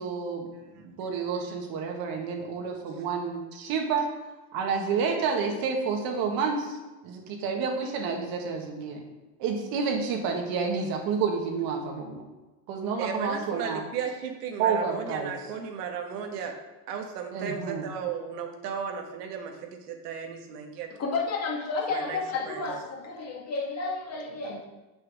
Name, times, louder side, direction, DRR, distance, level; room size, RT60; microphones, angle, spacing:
voice 1, 0.0-4.1 4.5-9.0 9.4-12.2 12.7-13.8 14.6-15.3 17.3-17.9, right 5 dB, 50° right, 2 dB, 1.7 m, -29 dB
voice 2, 13.0-16.6 16.9-20.9 21.9-22.2 22.5-22.7, right 7 dB, 85° right, 3 dB, 1.6 m, -35 dB
voice 3, 21.0-24.7, left 4 dB, 35° left, -1 dB, 1.8 m, -31 dB
7.5 x 5.9 x 4.9 m, 1.2 s
supercardioid pair, 135°, 46 cm